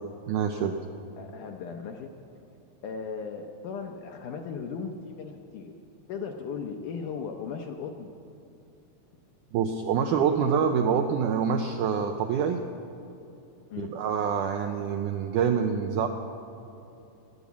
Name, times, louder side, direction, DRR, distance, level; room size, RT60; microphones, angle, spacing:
voice 1, 0.3-0.8 9.5-12.6 13.8-16.1, right 7 dB, 85° right, 5 dB, 1.8 m, -26 dB
voice 2, 1.2-2.1 2.8-5.8 6.1-8.1 13.7-13.9, left 5 dB, 75° left, 4 dB, 1.9 m, -37 dB
19.0 x 7.2 x 8.2 m, 2.8 s
omnidirectional pair, 4.3 m